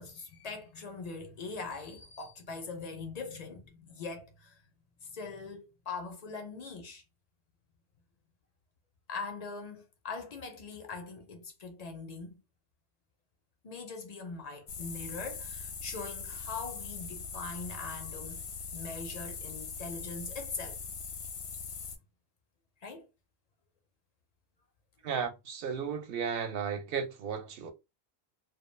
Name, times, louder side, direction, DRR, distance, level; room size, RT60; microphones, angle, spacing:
voice 1, 0.0-4.6 5.0-7.0 9.1-12.4 13.6-18.4 18.7-20.8 22.8-23.1, left 4 dB, 55° left, 0.5 m, -42 dB
sound 1, 14.7-22.0, left 5 dB, 75° left, 0.9 m, -41 dB
voice 2, 25.0-27.7, right 7 dB, 65° right, 0.8 m, -34 dB
2.2 x 2.1 x 3.1 m
omnidirectional pair, 1.1 m